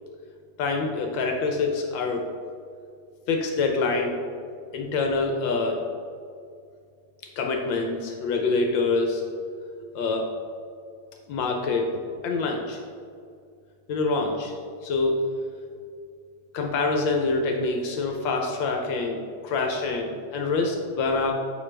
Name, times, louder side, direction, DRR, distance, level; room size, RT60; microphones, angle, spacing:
voice 1, 0.6-2.2 3.3-4.2 4.7-5.8 7.4-9.2 9.9-10.3 11.3-11.9 12.2-12.8 13.9-15.2 16.5-21.3, left 3 dB, 75° left, 2 dB, 1.4 m, -26 dB
7.3 x 5.2 x 3.3 m, 2.3 s
omnidirectional pair, 2.1 m